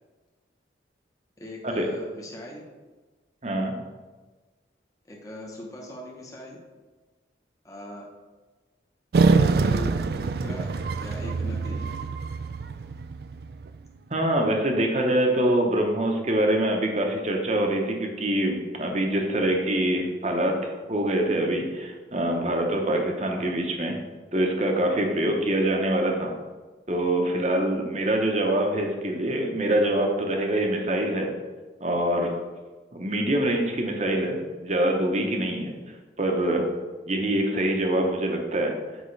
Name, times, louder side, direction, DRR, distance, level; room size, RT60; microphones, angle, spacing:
voice 1, 1.4-2.7 5.1-6.6 7.6-8.1 9.2-11.9 23.3-23.6, left 1 dB, 20° left, -2 dB, 1.0 m, -40 dB
voice 2, 3.4-3.7 14.1-23.9 24.3-26.3 26.9-31.3 31.8-32.3 32.9-35.7 36.2-36.6 37.1-38.7, right 1 dB, 35° right, 2 dB, 0.9 m, -24 dB
sound 1, 9.1-13.7, right 4 dB, 55° right, 0.3 m, -25 dB
8.1 x 5.0 x 3.3 m, 1.3 s
head